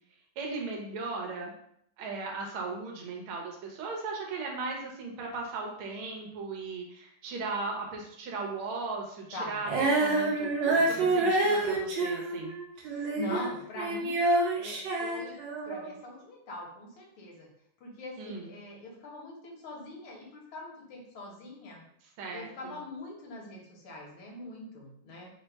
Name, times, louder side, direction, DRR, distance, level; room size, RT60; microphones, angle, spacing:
voice 1, 0.4-1.5 2.0-12.6 18.2-18.5 22.2-22.8, right 3 dB, 85° right, 0 dB, 1.7 m, -37 dB
Female singing, 9.7-13.5 13.8-15.9, right 2 dB, 65° right, 1.4 m, -27 dB
voice 2, 10.7-11.2 12.8-14.2 14.5-15.4 15.6-17.5 17.8-21.8 22.3-25.3, left 2 dB, 75° left, -3 dB, 2.0 m, -42 dB
4.5 x 2.2 x 4.5 m, 0.71 s
omnidirectional pair, 2.3 m